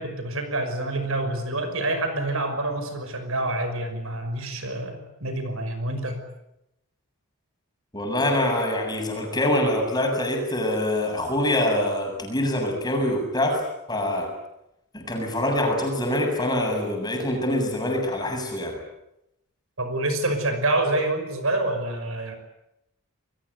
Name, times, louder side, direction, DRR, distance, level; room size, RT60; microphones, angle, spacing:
voice 1, 0.0-6.2 19.8-22.4, right 2 dB, 70° right, 7 dB, 5.8 m, -27 dB
voice 2, 7.9-13.6 13.9-14.3 14.9-18.8, left 1 dB, 20° left, 2 dB, 7.3 m, -25 dB
29.0 x 21.5 x 8.3 m, 0.86 s
head